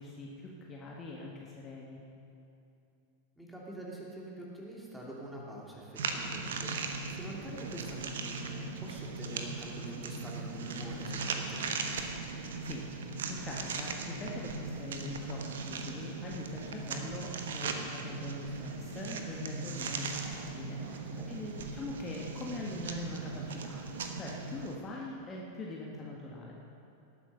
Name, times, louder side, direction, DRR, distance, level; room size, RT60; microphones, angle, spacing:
voice 1, 0.0-2.0 12.6-26.5, left 2 dB, 25° left, -3 dB, 1.6 m, -43 dB
voice 2, 3.4-11.7 20.8-21.3, right 1 dB, 5° right, -4 dB, 2.8 m, -45 dB
sound 1, 6.0-24.8, right 4 dB, 60° right, 1.1 m, -38 dB
18.5 x 8.7 x 5.5 m, 2.7 s
figure-of-eight pair, 90°, 0 cm